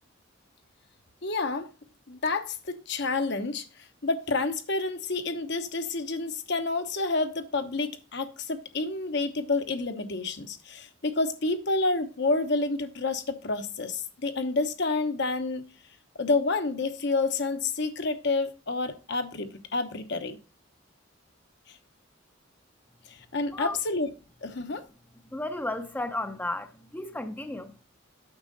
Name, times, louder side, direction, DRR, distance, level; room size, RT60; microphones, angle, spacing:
voice 1, 1.2-1.7 2.1-3.6 4.0-15.7 16.2-20.4 23.1-24.1 24.4-24.8, left 3 dB, 60° left, 1.0 m, -29 dB
voice 2, 25.3-27.7, left 1 dB, 10° left, 0.6 m, -33 dB
8.8 x 6.3 x 4.0 m
head